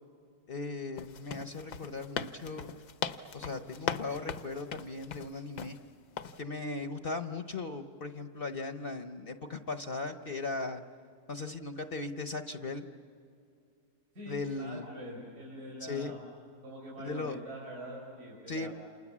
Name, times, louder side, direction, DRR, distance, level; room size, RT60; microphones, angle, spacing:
voice 1, 0.5-2.7 3.3-5.8 6.4-10.8 11.3-12.8 14.3-14.9 15.8-16.1 17.0-17.4 18.5-18.7, left 3 dB, 45° left, 8 dB, 0.9 m, -38 dB
sound 1, 1.0-5.8 6.2-6.4, left 7 dB, 80° left, 1.5 m, -39 dB
voice 2, 14.1-16.2 16.6-18.7, right 1 dB, 70° right, -4 dB, 5.8 m, -44 dB
30.0 x 27.5 x 7.3 m, 2.4 s
omnidirectional pair, 1.7 m